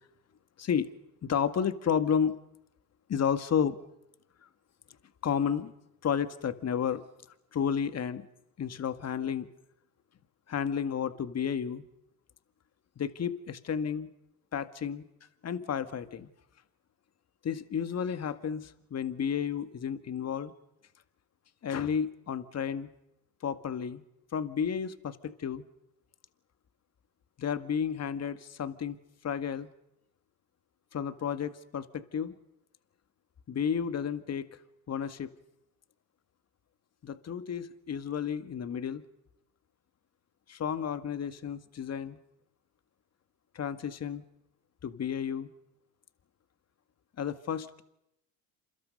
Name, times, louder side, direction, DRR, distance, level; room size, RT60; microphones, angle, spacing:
voice 1, 0.6-0.9 1.2-2.4 3.1-3.8 5.2-5.7 6.0-7.0 7.5-8.3 8.6-9.5 10.5-11.8 13.0-14.1 14.5-15.0 15.4-16.3 17.4-20.5 21.6-22.9 23.4-24.0 24.3-25.6 27.4-29.0 29.2-29.7 30.9-32.3 33.5-34.5 34.9-35.3 37.0-39.0 40.5-42.2 43.5-44.2 44.8-45.5 47.2-47.8, left 7 dB, 35° left, 11 dB, 2.0 m, -32 dB
29.0 x 27.0 x 5.5 m, 0.80 s
hypercardioid pair, 70°, 42 cm